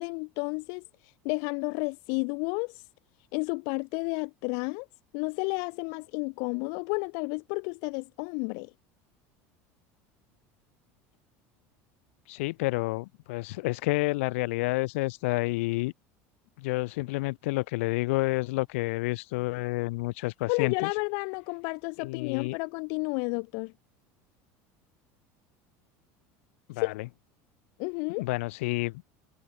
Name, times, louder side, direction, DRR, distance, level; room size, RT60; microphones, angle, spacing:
voice 1, 0.0-2.8 3.3-4.9 5.1-8.7 20.5-23.7 26.7-27.0 27.8-28.3, left 40 dB or more, 70° left, 1.8 m, -31 dB
voice 2, 12.3-15.9 16.6-20.9 22.0-22.6 26.7-27.1 28.2-29.0, left 22 dB, 85° left, 0.8 m, -29 dB
supercardioid pair, 135°, 7 cm